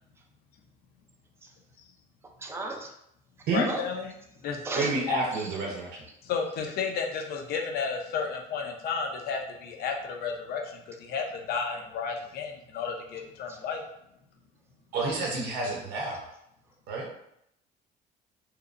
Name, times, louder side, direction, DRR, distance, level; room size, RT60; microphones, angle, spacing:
voice 1, 2.4-2.9 3.7-3.8 4.6-4.9 13.5-13.6, right 2 dB, 15° right, 2 dB, 0.3 m, -34 dB
voice 2, 3.5-4.1 4.4-5.2 6.2-13.8, left 5 dB, 65° left, 3 dB, 0.5 m, -32 dB
voice 3, 4.8-6.0 14.9-16.3 16.9-17.1, right 3 dB, 85° right, -1 dB, 0.5 m, -29 dB
2.8 x 2.0 x 2.4 m, 0.77 s
cardioid pair, 110°, 17 cm